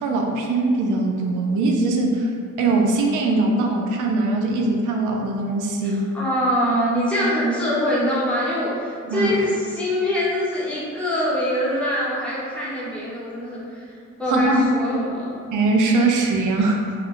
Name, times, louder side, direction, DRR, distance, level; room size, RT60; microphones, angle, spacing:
voice 1, 0.0-2.3 2.6-6.1 9.1-9.4 14.3-14.7 15.5-16.9, right 2 dB, 80° right, 1 dB, 0.5 m, -21 dB
voice 2, 5.8-13.9 14.2-15.4, equal, 5° left, -8 dB, 0.9 m, -24 dB
2.3 x 2.1 x 3.5 m, 2.2 s
cardioid pair, 90°, 30 cm